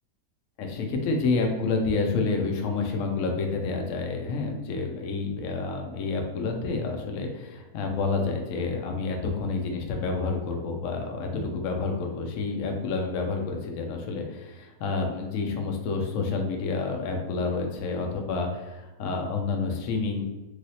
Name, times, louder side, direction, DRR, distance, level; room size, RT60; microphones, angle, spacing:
voice 1, 0.6-20.2, left 4 dB, 70° left, 2 dB, 0.7 m, -29 dB
3.2 x 2.7 x 2.7 m, 1.1 s
omnidirectional pair, 1.9 m